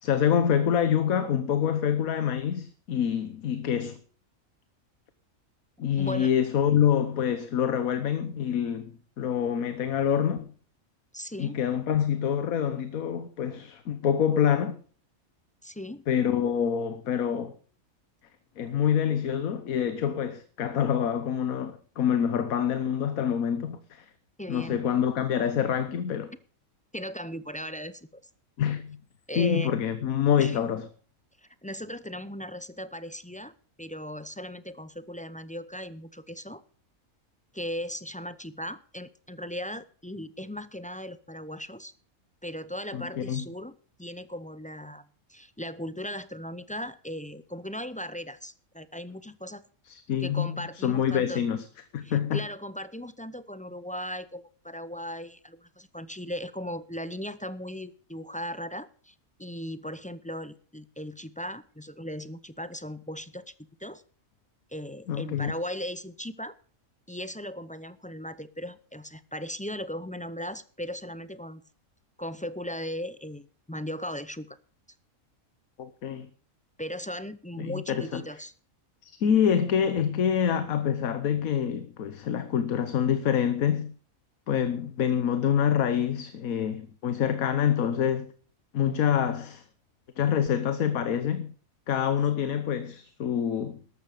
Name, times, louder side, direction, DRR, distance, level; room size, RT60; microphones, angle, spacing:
voice 1, 0.0-4.0 5.8-10.5 11.4-14.8 16.1-17.5 18.6-24.1 24.5-26.3 28.6-29.0 29.3-30.9 42.9-43.4 49.9-51.6 51.9-52.4 65.1-65.5 75.8-76.3 77.6-78.4 79.0-83.9 84.5-88.3 88.7-89.6 90.2-91.5 91.9-93.8, left 8 dB, 80° left, 1.4 m, -26 dB
voice 2, 6.0-6.3 11.1-11.6 15.6-16.0 24.4-24.8 26.9-28.2 29.3-29.7 30.4-30.6 31.6-33.5 33.8-36.6 37.5-41.9 42.4-43.7 44.0-49.6 50.2-51.4 52.0-63.5 63.8-64.0 64.7-66.5 67.1-71.6 72.2-74.6 76.8-78.5, equal, 10° left, 0.4 m, -37 dB
13.5 x 12.0 x 5.0 m
omnidirectional pair, 1.5 m